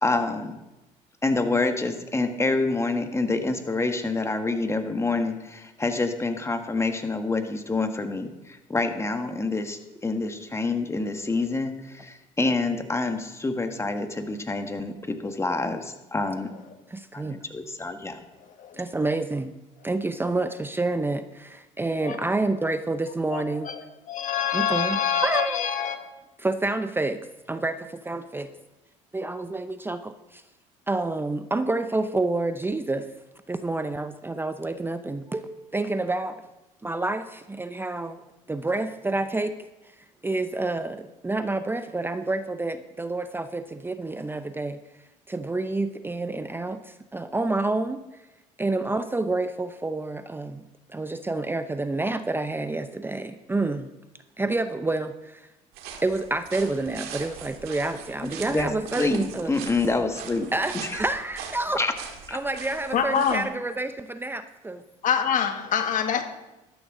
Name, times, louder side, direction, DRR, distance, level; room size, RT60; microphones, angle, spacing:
voice 1, 0.0-0.6 1.2-16.5 17.1-18.2 58.2-58.7 59.0-60.9 61.7-61.9 62.3-62.4, left 3 dB, 15° left, 7 dB, 1.7 m, -27 dB
voice 2, 16.9-17.4 18.7-19.5 19.8-23.7 24.5-25.7 26.4-27.2 27.5-28.5 29.1-30.4 30.9-33.1 33.5-36.4 36.8-38.2 38.5-39.5 39.8-44.8 45.3-48.0 48.6-50.6 50.9-53.9 54.4-55.5 56.0-59.5 60.5-61.8 62.3-64.8, right 2 dB, 15° right, 10 dB, 0.7 m, -28 dB
voice 3, 23.3-23.8 24.1-26.0 62.9-63.5 65.0-66.2, left 8 dB, 55° left, 7 dB, 1.6 m, -25 dB
sound 1, 55.7-63.4, right 7 dB, 70° right, 1.9 m, -41 dB
13.0 x 12.5 x 3.8 m, 0.99 s
hypercardioid pair, 70°, 16 cm